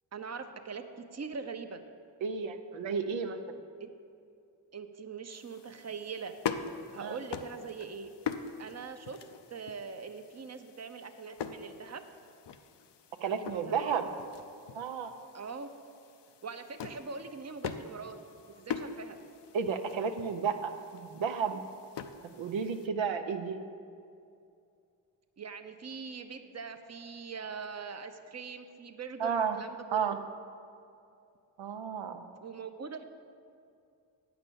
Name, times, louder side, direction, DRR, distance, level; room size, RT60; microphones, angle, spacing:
voice 1, 0.1-1.8 3.8-3.9 4.7-6.4 6.9-8.1 8.6-9.2 9.5-12.1 13.7-14.0 15.3-15.7 16.4-18.2 18.6-19.2 25.4-30.2 32.4-33.0, right 5 dB, 35° right, 8 dB, 0.8 m, -42 dB
voice 2, 2.2-3.4 7.0-7.2 13.2-14.1 14.7-15.1 19.5-21.6 22.3-23.6 29.2-29.6 29.9-30.2 31.6-32.3, right 6 dB, 75° right, 6 dB, 0.8 m, -32 dB
sound 1, 5.3-22.9, left 7 dB, 60° left, 0.7 m, -43 dB
8.8 x 6.0 x 6.9 m, 2.5 s
cardioid pair, 55°, 46 cm